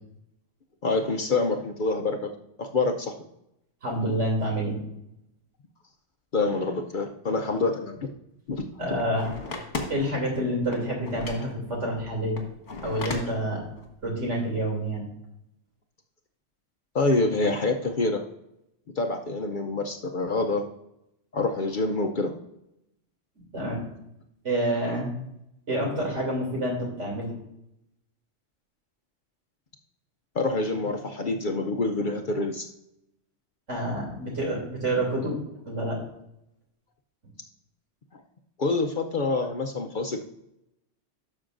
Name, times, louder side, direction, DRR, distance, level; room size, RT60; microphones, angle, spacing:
voice 1, 0.8-2.3 2.6-3.1 6.3-8.0 8.5-8.7 16.9-18.2 19.0-20.6 21.3-22.3 30.3-32.7 38.1-38.2 38.6-40.3, left 3 dB, 50° left, 4 dB, 0.7 m, -26 dB
voice 2, 3.8-4.8 8.8-9.3 9.9-12.4 12.8-13.6 14.0-15.1 23.5-23.8 24.4-25.1 25.7-27.3 33.7-35.4 35.6-36.0, right 1 dB, 75° right, -1 dB, 3.2 m, -28 dB
sound 1, 8.5-10.4 10.6-14.1, left 3 dB, 65° left, 1.7 m, -37 dB
12.0 x 6.2 x 2.5 m, 0.82 s
omnidirectional pair, 1.3 m